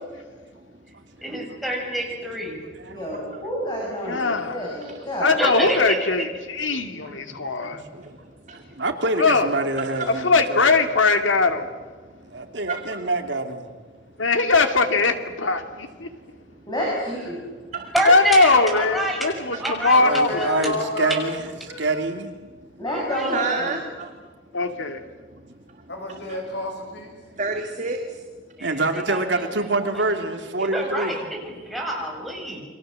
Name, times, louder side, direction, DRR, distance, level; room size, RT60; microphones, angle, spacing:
voice 1, 1.2-2.6 5.4-6.1 17.9-19.2 19.6-20.0 20.4-20.7 22.9-23.3 28.6-28.8 29.1-29.5 30.7-32.6, right 1 dB, ahead, -1 dB, 6.6 m, -27 dB
voice 2, 2.9-5.8 16.7-17.4 22.8-23.8, equal, 20° left, -2 dB, 6.7 m, -29 dB
voice 3, 4.1-4.6 5.2-7.8 9.2-9.5 10.1-11.7 14.2-16.1 18.1-20.3 20.6-20.7 24.5-25.0, left 3 dB, 85° left, 6 dB, 2.6 m, -20 dB
voice 4, 6.7-8.2 8.5-10.7 12.3-13.7 19.9-21.4 21.8-22.3 28.6-31.2, right 2 dB, 70° right, 5 dB, 2.8 m, -27 dB
voice 5, 8.0-8.6 9.5-9.6 9.9-10.0 12.1-13.0 16.2-16.7 17.7-17.9 19.5-19.7 21.7-21.8 23.3-24.2 25.2-25.9 26.3-26.4 27.3-28.3, right 4 dB, 40° right, 4 dB, 1.9 m, -32 dB
voice 6, 19.9-21.4 21.7-22.0 25.9-27.2, left 1 dB, 60° left, 2 dB, 6.0 m, -30 dB
30.0 x 23.5 x 7.7 m, 1.4 s
head